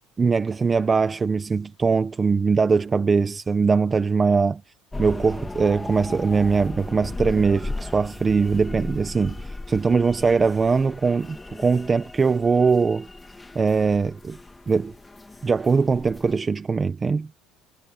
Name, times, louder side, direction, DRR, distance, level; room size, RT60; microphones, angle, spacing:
voice 1, 0.2-4.6 5.0-13.1 13.5-14.4 14.7-14.9 15.4-17.3, right 5 dB, 20° right, 1.1 m, -21 dB
sound 1, 4.9-16.4, left 2 dB, 10° left, 2.1 m, -36 dB
cardioid pair, 125°, 0 cm